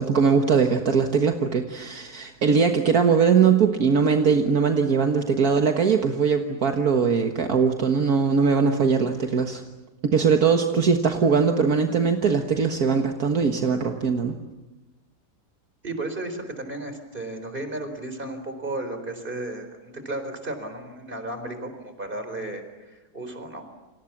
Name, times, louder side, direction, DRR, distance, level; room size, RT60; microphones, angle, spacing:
voice 1, 0.0-9.6 10.0-14.4, right 5 dB, 65° right, 4 dB, 2.0 m, -21 dB
voice 2, 15.8-23.7, right 2 dB, 30° right, 8 dB, 4.4 m, -34 dB
30.0 x 27.0 x 7.3 m, 1.1 s
omnidirectional pair, 1.7 m